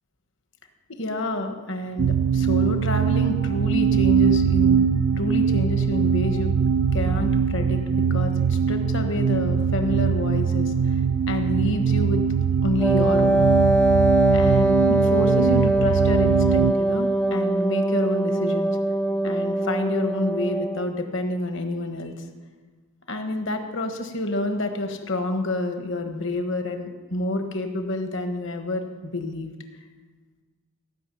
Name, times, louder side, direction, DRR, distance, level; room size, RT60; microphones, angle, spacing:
voice 1, 0.9-6.5 6.9-10.9 11.3-12.2 12.6-13.5 14.3-18.8 19.2-22.1 23.1-29.5, left 1 dB, 55° left, 6 dB, 1.3 m, -28 dB
sound 1, 2.0-16.7, right 6 dB, 70° right, 0.3 m, -22 dB
Wind instrument woodwind instrument, 12.8-20.9, right 1 dB, 5° left, 0.6 m, -22 dB
16.5 x 6.1 x 8.4 m, 1.4 s
head